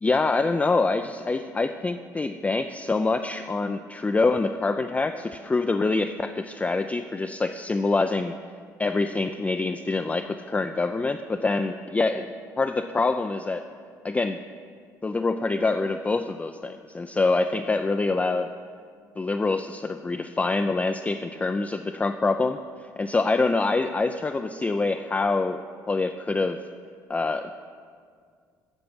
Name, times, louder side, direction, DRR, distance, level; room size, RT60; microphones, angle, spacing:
voice 1, 0.0-8.3 8.8-13.7 14.0-14.4 15.0-18.5 19.2-22.6 23.0-26.6 27.1-27.5, left 3 dB, 15° left, 7 dB, 0.3 m, -25 dB
8.0 x 6.9 x 6.0 m, 2.1 s
hypercardioid pair, 60°, 8 cm